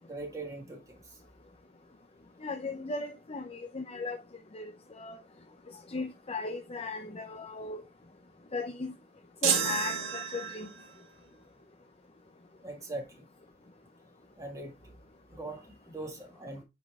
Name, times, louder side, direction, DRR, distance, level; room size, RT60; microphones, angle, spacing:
voice 1, 0.0-1.2 12.6-13.3 14.4-14.9 15.3-16.6, right 2 dB, 15° right, 2.0 m, -41 dB
voice 2, 2.4-4.2 4.5-5.2 5.9-7.8 8.5-8.9 9.4-10.7, left 3 dB, 30° left, 0.6 m, -37 dB
sound 1, 9.4-10.9, right 7 dB, 75° right, 1.9 m, -30 dB
9.4 x 4.3 x 3.5 m
head